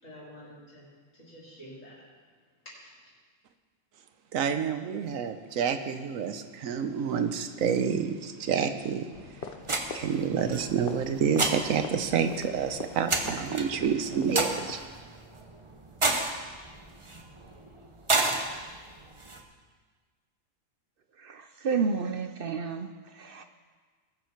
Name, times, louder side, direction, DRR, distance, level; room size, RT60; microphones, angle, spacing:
voice 1, 0.0-2.1 2.6-3.0, equal, 75° left, -7 dB, 4.6 m, -49 dB
voice 2, 4.3-9.1 9.9-14.9, right 7 dB, 85° right, 9 dB, 1.2 m, -28 dB
sound 1, 9.1-14.8, left 5 dB, 50° left, 0.8 m, -44 dB
sound 2, 9.6-19.4, right 2 dB, 25° right, 0.9 m, -32 dB
voice 3, 21.2-23.4, right 5 dB, 55° right, 8 dB, 0.7 m, -31 dB
20.0 x 7.1 x 4.5 m, 1.5 s
omnidirectional pair, 1.4 m